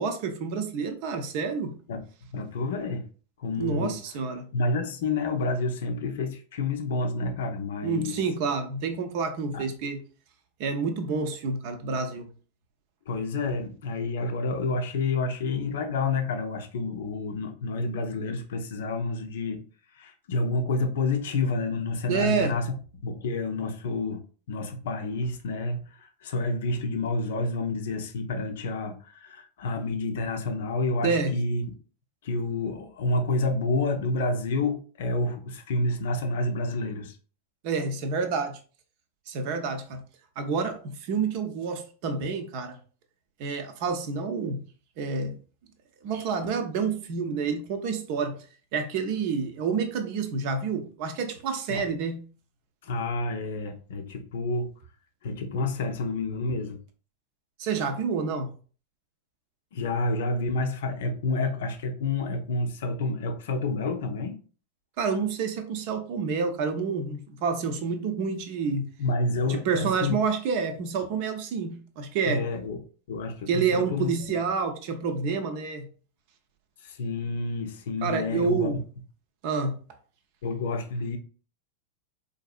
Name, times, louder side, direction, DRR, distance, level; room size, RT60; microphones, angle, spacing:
voice 1, 0.0-1.7 3.6-4.5 7.8-10.0 10.6-12.3 22.1-22.6 31.0-31.3 37.6-38.6 39.3-40.0 40.4-42.8 43.4-44.6 45.0-45.4 46.0-48.4 48.7-52.2 57.6-58.5 65.0-68.9 69.5-72.5 73.5-75.9 78.0-78.8 79.4-79.8, right 5 dB, 45° right, 0.6 m, -28 dB
voice 2, 2.3-3.1 3.4-4.0 4.5-8.2 9.5-9.6 13.1-19.6 19.9-24.2 24.5-31.6 32.2-37.2 51.7-51.8 52.8-54.7 55.2-56.8 59.7-64.4 69.0-70.2 72.2-72.8 73.1-74.1 76.8-78.8 80.4-81.2, left 3 dB, 55° left, 0.5 m, -29 dB
3.9 x 2.6 x 2.4 m
figure-of-eight pair, 90°, 0 cm